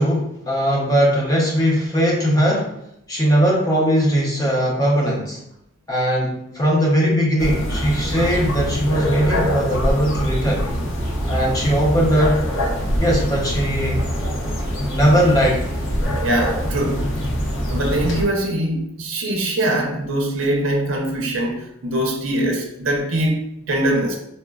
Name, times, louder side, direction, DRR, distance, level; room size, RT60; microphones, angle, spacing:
voice 1, 0.0-2.7 3.1-5.4 5.9-10.7 11.3-12.5 13.0-14.1 14.9-15.7, equal, 15° left, -4 dB, 0.6 m, -19 dB
sound 1, 7.4-18.2, equal, 65° left, 0.6 m, -24 dB
voice 2, 16.2-17.0 17.7-23.4 23.7-24.2, right 1 dB, 65° right, 1 dB, 0.5 m, -22 dB
4.2 x 2.1 x 2.3 m, 0.77 s
head